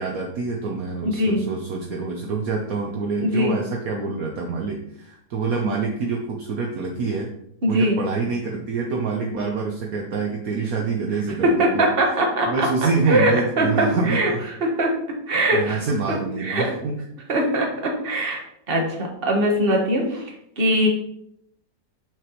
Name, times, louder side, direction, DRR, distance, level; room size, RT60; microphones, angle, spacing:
voice 1, 0.0-7.3 7.7-11.9 12.5-14.4 15.5-17.0, right 4 dB, 65° right, 1 dB, 1.2 m, -26 dB
voice 2, 1.0-1.4 3.2-3.6 7.6-8.0 11.4-12.7 13.1-13.3 13.6-14.3 14.6-14.9 15.3-15.8 16.1-16.6 17.3-18.4 18.7-20.2 20.6-20.9, right 1 dB, 35° right, 0 dB, 1.5 m, -21 dB
6.8 x 6.4 x 3.0 m, 0.73 s
omnidirectional pair, 1.8 m